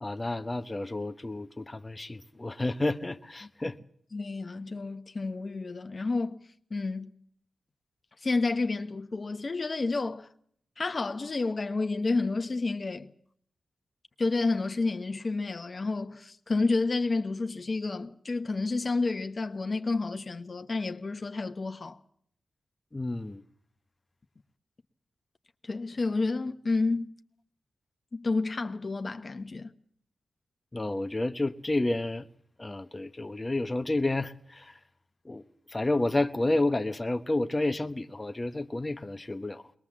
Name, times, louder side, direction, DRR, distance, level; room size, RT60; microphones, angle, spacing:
voice 1, 0.0-3.8 22.9-23.4 30.7-32.3 32.6-34.8 35.2-35.4 35.7-39.6, left 2 dB, 25° left, 1.1 m, -30 dB
voice 2, 4.1-6.4 6.7-7.1 8.2-10.3 10.8-13.1 14.2-22.0 25.6-27.1 28.1-29.7, left 3 dB, 50° left, 1.2 m, -30 dB
21.5 x 20.5 x 7.4 m
supercardioid pair, 40°, 0 cm